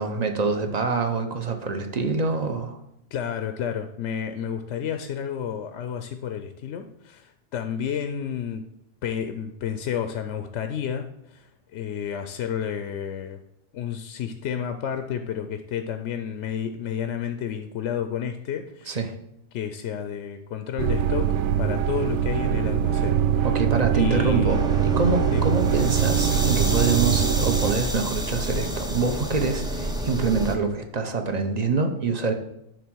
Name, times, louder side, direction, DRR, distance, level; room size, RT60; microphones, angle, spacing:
voice 1, 0.0-2.8 18.9-19.1 23.4-32.3, right 4 dB, 40° right, 6 dB, 0.8 m, -25 dB
voice 2, 3.1-8.6 9.0-13.4 13.7-19.0 19.5-23.5 23.9-24.6 25.3-25.4, left 8 dB, 75° left, 7 dB, 0.9 m, -31 dB
sound 1, 20.8-27.7, right 9 dB, 70° right, 0.8 m, -23 dB
sound 2, 24.5-30.6, equal, 5° right, 0.6 m, -29 dB
10.0 x 3.5 x 6.2 m, 0.80 s
omnidirectional pair, 1.3 m